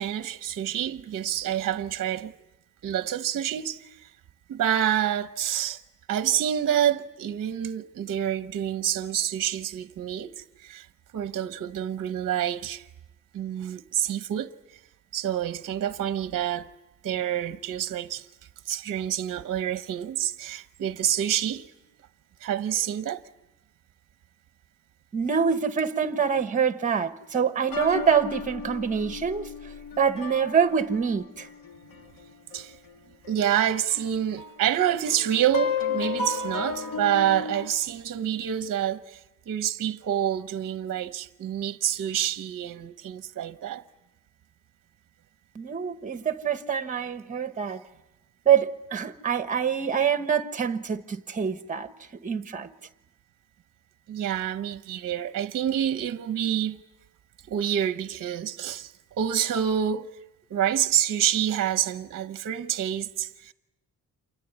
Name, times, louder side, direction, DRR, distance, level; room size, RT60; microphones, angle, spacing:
voice 1, 0.0-2.3 2.8-4.1 4.5-5.8 6.1-10.9 11.1-12.8 13.3-14.5 15.1-16.7 17.0-18.3 18.6-21.7 22.4-23.2 32.5-32.8 33.3-39.2 39.5-43.8 54.1-56.8 57.5-60.1 60.5-63.5, right 10 dB, 50° right, 0.9 m, -27 dB
voice 2, 25.1-29.5 30.0-31.5 45.5-47.8 48.4-51.9 52.2-52.7, right 7 dB, 25° right, 1.2 m, -25 dB
sound 1, 27.7-32.9 33.2-33.3 33.9-37.7, left 5 dB, 80° left, 2.0 m, -33 dB
28.5 x 24.0 x 8.1 m
cardioid pair, 165°, 33 cm